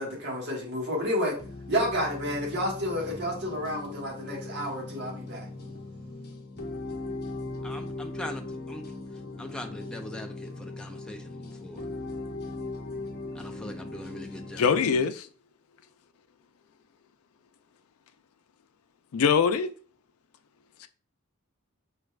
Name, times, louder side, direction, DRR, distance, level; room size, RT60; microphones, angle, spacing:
voice 1, 0.0-1.3 1.7-5.5, equal, 55° right, 1.5 m, -30 dB
sound 1, 1.4-15.0, left 2 dB, 50° left, 0.9 m, -39 dB
voice 2, 7.6-8.9 9.4-11.8 13.3-14.9, left 1 dB, 5° left, 0.4 m, -41 dB
voice 3, 14.6-15.3 19.1-19.7 20.8-20.9, left 6 dB, 90° left, 0.4 m, -23 dB
5.0 x 3.3 x 2.4 m
head